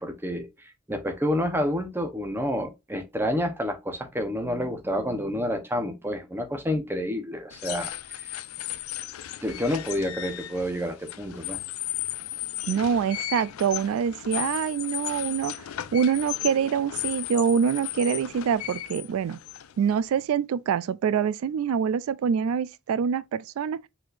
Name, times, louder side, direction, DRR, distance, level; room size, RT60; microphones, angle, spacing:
voice 1, 0.0-8.3 9.4-11.6, equal, 10° right, 0.8 m, -29 dB
sound 1, 7.5-20.2, left 14 dB, 85° left, 0.4 m, -35 dB
voice 2, 12.7-15.5 15.9-19.4 19.8-23.8, right 7 dB, 85° right, 0.3 m, -25 dB
4.6 x 4.1 x 2.5 m
head